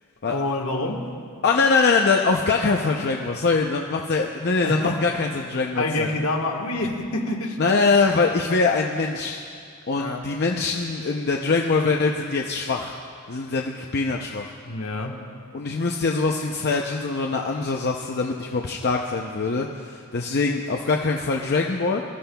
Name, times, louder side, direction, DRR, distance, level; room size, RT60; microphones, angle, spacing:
voice 1, 0.2-1.1 4.6-5.0 5.7-7.6 10.0-10.3 14.6-15.2, left 2 dB, 70° left, 1 dB, 1.4 m, -27 dB
voice 2, 1.4-6.1 7.6-9.4 9.9-12.9 13.3-14.4 15.5-22.0, left 4 dB, 50° left, 1 dB, 0.6 m, -23 dB
23.0 x 13.0 x 2.3 m, 2.2 s
head